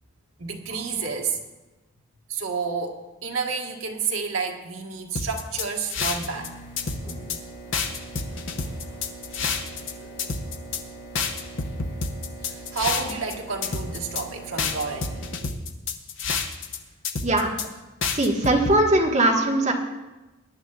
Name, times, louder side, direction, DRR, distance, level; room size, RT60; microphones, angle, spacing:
voice 1, 0.4-1.4 2.3-6.5 9.7-10.3 12.4-15.2, right 5 dB, 70° right, 1 dB, 1.5 m, -30 dB
sound 1, 5.1-6.5 6.8-7.4 7.7-9.9 10.2-10.8 11.1-13.3 13.6-14.2 14.6-16.8 17.0-17.7 18.0-18.8, left 5 dB, 60° left, 0.9 m, -28 dB
sound 2, 6.2-15.4, right 2 dB, 25° left, 1.7 m, -42 dB
voice 2, 18.1-19.7, right 1 dB, 35° right, -1 dB, 1.5 m, -20 dB
21.5 x 10.5 x 2.4 m, 1.1 s
head